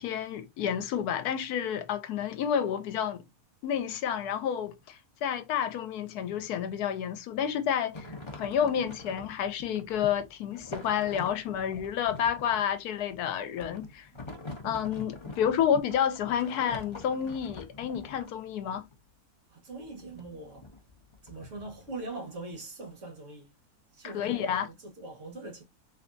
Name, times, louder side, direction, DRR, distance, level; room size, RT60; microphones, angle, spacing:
voice 1, 0.0-3.2 3.6-14.1 14.6-18.9 24.0-24.7, left 8 dB, 80° left, 1.1 m, -30 dB
sound 1, 7.9-18.9 19.8-22.1, left 2 dB, 50° left, 0.3 m, -45 dB
voice 2, 19.5-20.7 21.2-23.6 23.9-25.6, right 2 dB, 55° right, 1.6 m, -42 dB
3.4 x 3.2 x 2.5 m
omnidirectional pair, 1.7 m